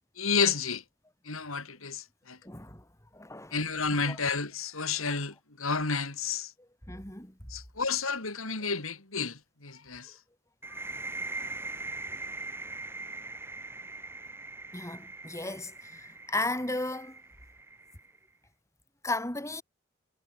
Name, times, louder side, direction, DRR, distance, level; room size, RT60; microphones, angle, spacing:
voice 1, 0.2-0.8 1.3-2.4 3.5-6.5 7.5-10.1, left 5 dB, 90° left, 5.8 m, -31 dB
voice 2, 2.4-2.8 3.1-3.5 4.0-4.2 6.9-7.4 10.7-10.8 14.7-17.2 19.0-19.6, left 2 dB, 15° left, 5.6 m, -35 dB
sound 1, 10.6-18.2, right 3 dB, 10° right, 7.3 m, -41 dB
head